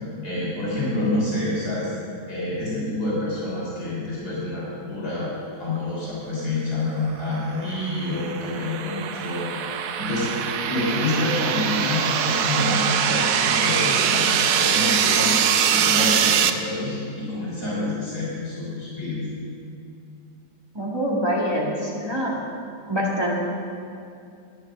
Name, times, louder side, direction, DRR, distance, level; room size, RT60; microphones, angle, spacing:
voice 1, 0.2-1.9 2.3-5.3 5.6-10.3 10.7-15.4 15.7-19.3, left 2 dB, 60° left, -7 dB, 3.9 m, -27 dB
sound 1, 7.5-16.5, right 8 dB, 65° right, 1.0 m, -23 dB
voice 2, 20.7-22.3 22.9-23.4, equal, 15° right, -4 dB, 1.9 m, -25 dB
12.5 x 9.4 x 6.8 m, 2.4 s
omnidirectional pair, 1.8 m